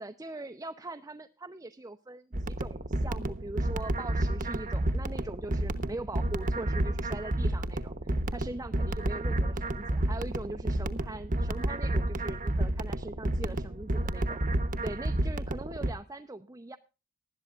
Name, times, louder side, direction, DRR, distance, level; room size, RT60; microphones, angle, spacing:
voice 1, 0.0-14.4 14.8-16.8, right 2 dB, 15° right, 7 dB, 0.6 m, -41 dB
sound 1, 2.3-15.9, right 1 dB, 40° right, 1.0 m, -30 dB
19.0 x 12.0 x 2.4 m, 0.32 s
head